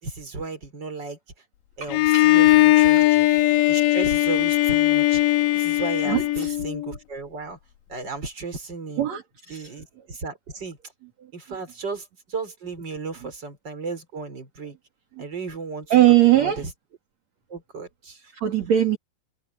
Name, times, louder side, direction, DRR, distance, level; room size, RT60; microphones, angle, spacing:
voice 1, 0.0-1.2 1.8-3.3 3.7-5.2 5.5-7.6 7.9-9.1 9.5-10.8 11.3-14.8 15.2-15.9 16.4-16.7 17.5-18.3, right 4 dB, 25° right, 5.1 m, -34 dB
voice 2, 1.8-2.4 3.0-3.1 6.0-6.6 9.0-9.7 11.2-11.3 13.2-13.3 15.2-15.3 15.9-16.7 18.3-19.0, right 13 dB, 45° right, 3.3 m, -21 dB
Bowed string instrument, 1.9-6.9, left 16 dB, 90° left, 3.6 m, -19 dB
omnidirectional pair, 5.0 m